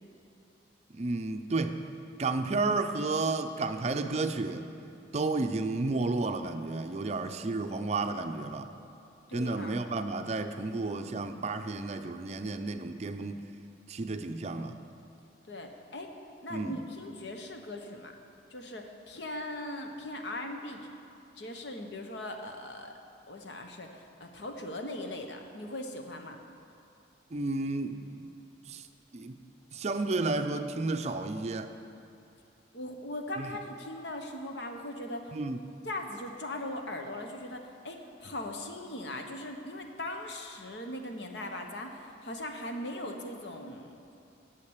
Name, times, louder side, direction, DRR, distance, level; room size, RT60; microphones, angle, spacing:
voice 1, 0.9-1.8 2.2-4.7 5.1-8.7 9.3-13.4 13.9-14.8 16.5-16.7 27.3-28.3 28.7-28.8 29.1-29.4 29.7-31.7 33.4-33.5 35.3-35.6, right 3 dB, 35° right, 8 dB, 0.4 m, -32 dB
voice 2, 9.3-9.8 15.5-16.1 16.4-18.1 18.5-20.9 21.4-22.9 23.3-26.4 32.7-35.3 35.8-43.9, left 1 dB, 70° left, 4 dB, 1.0 m, -39 dB
8.7 x 7.5 x 8.0 m, 2.6 s
head